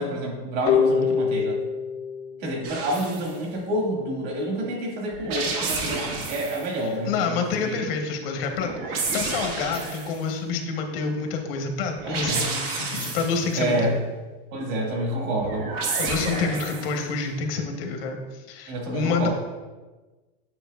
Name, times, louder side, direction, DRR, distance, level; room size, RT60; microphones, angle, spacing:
voice 1, 0.0-1.6 2.4-7.9 12.1-12.5 13.6-13.9 14.5-15.7 18.7-19.3, right 1 dB, 50° right, -1 dB, 1.9 m, -28 dB
sound 1, 0.7-3.5, left 6 dB, 40° left, 0.7 m, -25 dB
sound 2, 2.6-3.3 5.1-6.7 8.5-10.2 12.0-13.6 15.4-17.0, right 3 dB, 65° right, 1.5 m, -30 dB
voice 2, 6.8-13.9 16.0-19.3, left 5 dB, 65° left, 3 dB, 1.1 m, -28 dB
8.8 x 4.7 x 2.3 m, 1.2 s
supercardioid pair, 155°, 31 cm